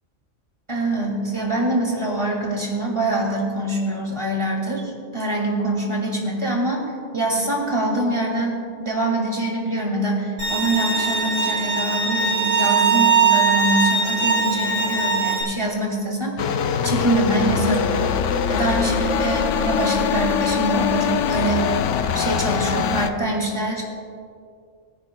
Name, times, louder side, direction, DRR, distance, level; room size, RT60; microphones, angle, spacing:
voice 1, 0.7-6.8 7.1-16.5 16.8-18.0 18.5-21.7 22.1-23.8, right 2 dB, 25° right, -1 dB, 2.4 m, -24 dB
Bowed string instrument, 10.4-15.4, right 5 dB, 55° right, 3.1 m, -20 dB
sound 1, 16.4-23.1, left 7 dB, 85° left, 1.0 m, -22 dB
23.0 x 10.0 x 2.3 m, 2.3 s
omnidirectional pair, 1.3 m